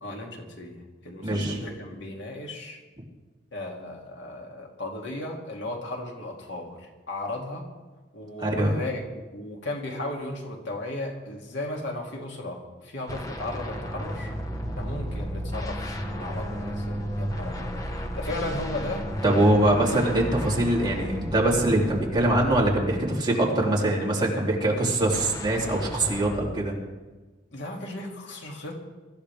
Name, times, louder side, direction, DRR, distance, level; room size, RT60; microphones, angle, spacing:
voice 1, 0.0-2.8 3.5-7.7 8.1-14.3 14.8-17.7 18.1-19.1 19.4-19.7 27.5-28.8, left 1 dB, 80° left, 0 dB, 2.6 m, -35 dB
voice 2, 1.2-1.6 8.4-8.8 19.2-26.7, right 1 dB, 25° right, -3 dB, 3.1 m, -23 dB
sound 1, 13.1-23.3 25.1-26.4, equal, 20° left, 1.3 m, -33 dB
23.5 x 14.5 x 3.5 m, 1.3 s
head